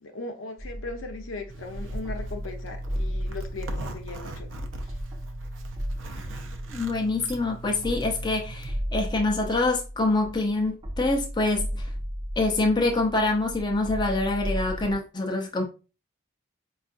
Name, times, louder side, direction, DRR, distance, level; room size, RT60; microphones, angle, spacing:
voice 1, 0.0-4.5 4.8-5.0, left 3 dB, 85° left, 0.7 m, -38 dB
sound 1, 0.6-15.0, equal, 25° right, 0.6 m, -35 dB
Zipper (clothing), 1.5-8.8, right 1 dB, 70° right, 0.6 m, -38 dB
voice 2, 6.7-11.9 12.4-15.6, left 2 dB, 20° left, 0.5 m, -25 dB
4.6 x 2.4 x 2.5 m
head